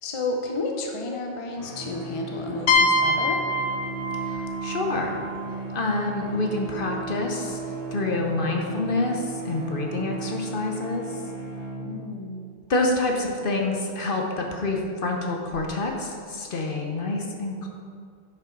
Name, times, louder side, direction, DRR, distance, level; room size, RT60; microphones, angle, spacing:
voice 1, 0.0-3.4 11.8-12.4 13.2-13.4, left 2 dB, 30° left, 1 dB, 0.7 m, -31 dB
sound 1, 1.5-12.3, right 3 dB, 30° right, 1.6 m, -36 dB
sound 2, 2.7-6.3, left 2 dB, 75° left, 0.9 m, -25 dB
voice 2, 4.2-5.2 5.7-7.6 7.9-11.1 12.7-17.7, left 2 dB, 50° left, 1 dB, 1.0 m, -27 dB
10.5 x 5.8 x 3.9 m, 2.2 s
omnidirectional pair, 1.2 m